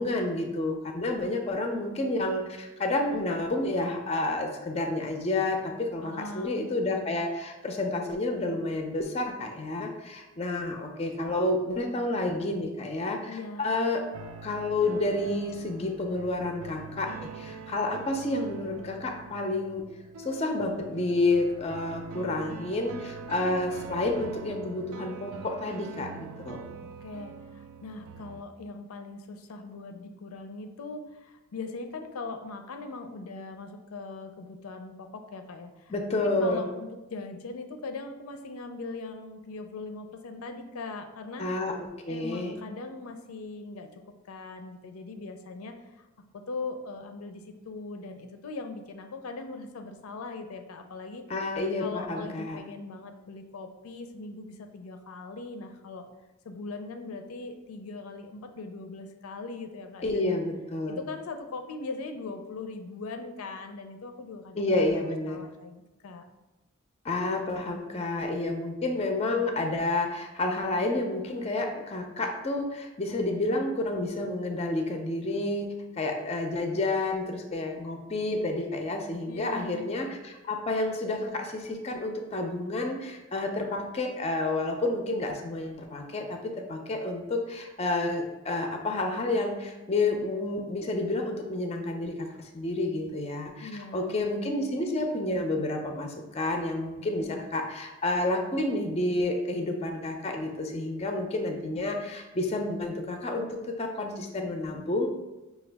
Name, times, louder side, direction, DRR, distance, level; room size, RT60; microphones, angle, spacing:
voice 1, 0.0-14.0 14.4-19.8 20.2-26.6 35.9-36.7 41.4-42.5 51.3-52.6 60.0-61.0 64.6-65.4 67.0-105.1, left 2 dB, 30° left, 4 dB, 0.4 m, -30 dB
voice 2, 6.0-6.8 13.3-13.6 26.8-35.9 36.4-41.4 42.1-44.0 44.3-46.1 46.3-51.2 51.8-56.1 56.5-60.3 60.9-66.2 79.3-79.9 93.6-94.2, left 3 dB, 85° left, 6 dB, 0.4 m, -40 dB
sound 1, 14.1-28.4, right 5 dB, 85° right, 0.3 m, -44 dB
5.7 x 2.3 x 3.3 m, 1.1 s
head